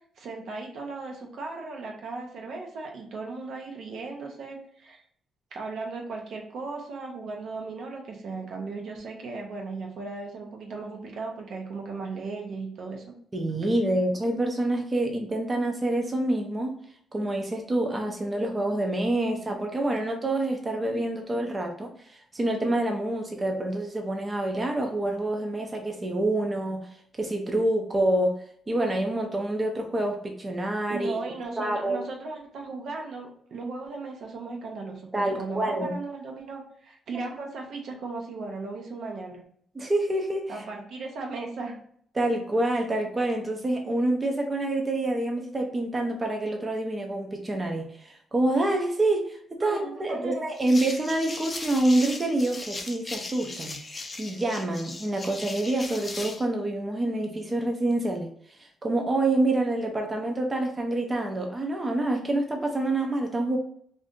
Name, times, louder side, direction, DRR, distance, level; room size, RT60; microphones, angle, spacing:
voice 1, 0.2-5.0 5.5-13.0 30.9-39.4 40.5-41.8 49.6-50.5, right 3 dB, 70° right, 1 dB, 0.7 m, -36 dB
voice 2, 13.3-16.7 17.1-26.8 27.2-28.3 28.7-31.2 31.6-32.0 35.1-35.9 37.1-37.2 39.8-40.6 42.1-58.3 58.6-63.6, right 1 dB, 25° right, 2 dB, 0.5 m, -27 dB
sound 1, 50.5-56.4, left 2 dB, 25° left, 0.5 m, -38 dB
2.6 x 2.5 x 3.5 m, 0.63 s
cardioid pair, 90°, 0 cm